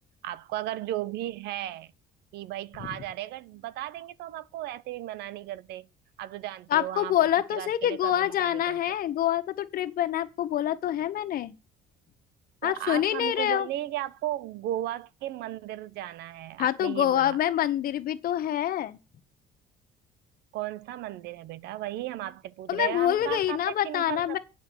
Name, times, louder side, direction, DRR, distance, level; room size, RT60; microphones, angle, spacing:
voice 1, 0.2-1.9 2.3-5.9 6.2-7.2 7.5-8.8 12.6-17.4 20.5-24.4, right 14 dB, 80° right, 0.6 m, -35 dB
voice 2, 6.7-11.5 12.6-13.7 16.6-19.0 22.7-24.4, left 11 dB, 60° left, 1.1 m, -26 dB
8.4 x 5.2 x 7.8 m
cardioid pair, 110°, 17 cm